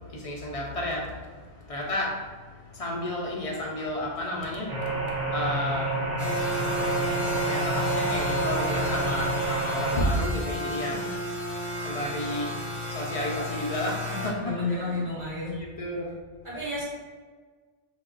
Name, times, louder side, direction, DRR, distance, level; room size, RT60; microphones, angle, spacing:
voice 1, 0.0-1.3 1.7-2.2 2.7-4.9 5.3-6.1 7.2-11.1 11.8-12.6 12.9-15.1 15.5-16.1, left 1 dB, 60° left, -2 dB, 0.4 m, -31 dB
sound 1, 4.7-10.0, right 2 dB, 45° right, 0.8 m, -29 dB
sound 2, 6.2-14.3, left 1 dB, 20° left, 0.8 m, -32 dB
voice 2, 14.3-15.6 16.4-16.8, left 2 dB, 30° right, -9 dB, 1.1 m, -31 dB
2.3 x 2.1 x 3.6 m, 1.5 s
omnidirectional pair, 1.1 m